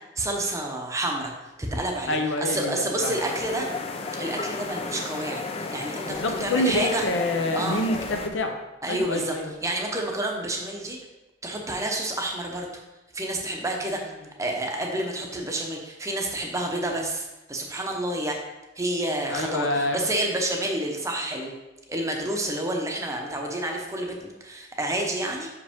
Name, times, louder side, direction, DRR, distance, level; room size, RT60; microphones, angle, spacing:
voice 1, 0.2-1.3 1.6-3.7 4.2-7.0 7.5-7.8 8.8-9.4 9.6-11.0 11.4-12.7 13.1-14.0 14.4-18.4 18.8-21.5 21.9-25.5, right 1 dB, 15° right, 1 dB, 0.7 m, -29 dB
voice 2, 2.1-3.2 6.1-8.6 8.9-9.5 19.3-20.0, left 1 dB, 70° left, 4 dB, 0.7 m, -27 dB
sound 1, 3.0-8.3, left 3 dB, 30° left, 0.4 m, -33 dB
6.0 x 5.0 x 3.6 m, 1.0 s
head